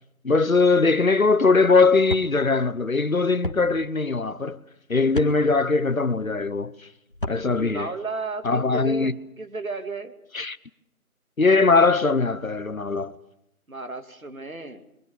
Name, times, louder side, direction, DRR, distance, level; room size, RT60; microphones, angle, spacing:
voice 1, 0.2-4.6 4.9-6.7 7.3-7.9 8.4-9.1 10.3-10.6 11.4-13.2, left 4 dB, 65° left, 1.1 m, -20 dB
sound 1, 2.1-2.3 3.4-3.6 5.1-5.3 7.1-7.4, left 1 dB, 35° left, 1.8 m, -30 dB
voice 2, 7.5-10.1 13.7-14.8, right 3 dB, 65° right, 2.7 m, -33 dB
28.0 x 24.0 x 7.0 m
figure-of-eight pair, 175°, 45 cm